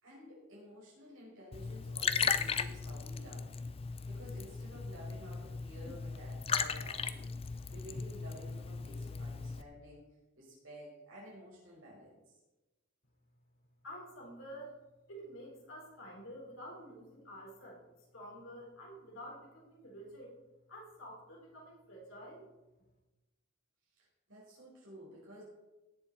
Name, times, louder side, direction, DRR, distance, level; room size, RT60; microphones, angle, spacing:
voice 1, 0.0-3.6 4.1-10.0 10.4-12.2 23.9-25.4, equal, 70° right, -5 dB, 4.8 m, -52 dB
Liquid, 1.5-9.6, left 6 dB, 25° left, 0.4 m, -37 dB
voice 2, 13.8-14.8 15.1-17.8 18.1-20.3 20.7-22.5, equal, 70° left, -2 dB, 3.9 m, -49 dB
17.5 x 7.2 x 4.1 m, 1.1 s
head